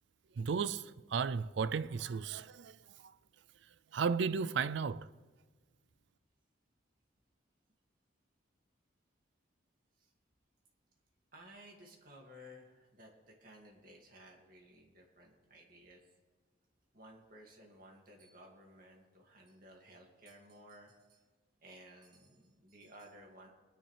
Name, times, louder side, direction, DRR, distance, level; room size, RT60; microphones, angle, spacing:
voice 1, 0.4-2.8 3.9-5.1, right 5 dB, 65° right, 0.4 m, -34 dB
voice 2, 11.3-16.0 16.9-21.2 21.6-23.5, equal, 45° right, 2.4 m, -57 dB
22.0 x 10.0 x 3.4 m
head